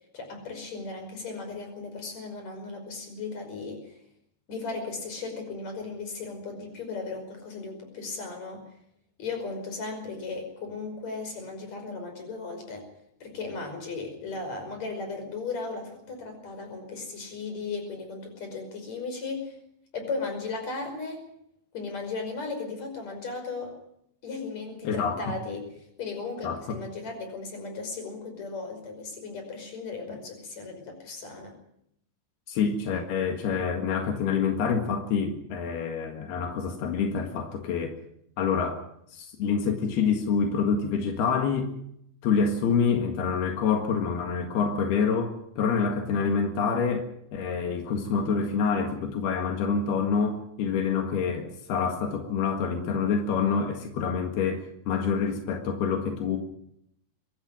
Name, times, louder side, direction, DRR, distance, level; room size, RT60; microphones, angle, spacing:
voice 1, 0.1-4.0 4.5-8.6 9.2-12.9 13.2-19.6 19.9-21.3 21.7-23.8 24.2-31.5, left 4 dB, 45° left, 5 dB, 6.4 m, -36 dB
voice 2, 24.8-25.4 26.4-26.6 32.5-38.0 38.4-38.8 39.1-41.7 42.2-56.4, left 6 dB, 90° left, 4 dB, 3.8 m, -27 dB
24.0 x 13.5 x 9.1 m, 0.74 s
omnidirectional pair, 4.5 m